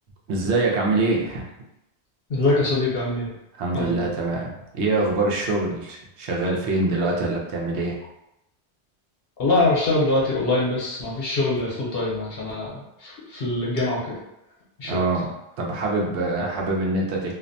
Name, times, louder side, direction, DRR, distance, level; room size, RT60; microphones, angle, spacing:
voice 1, 0.3-1.5 3.5-8.0 14.8-15.3 15.6-17.3, right 2 dB, 85° right, -1 dB, 0.9 m, -24 dB
voice 2, 2.3-3.3 3.7-4.1 9.4-14.1 14.8-15.0, left 2 dB, 65° left, -5 dB, 1.0 m, -24 dB
2.5 x 2.1 x 2.6 m, 0.85 s
omnidirectional pair, 1.1 m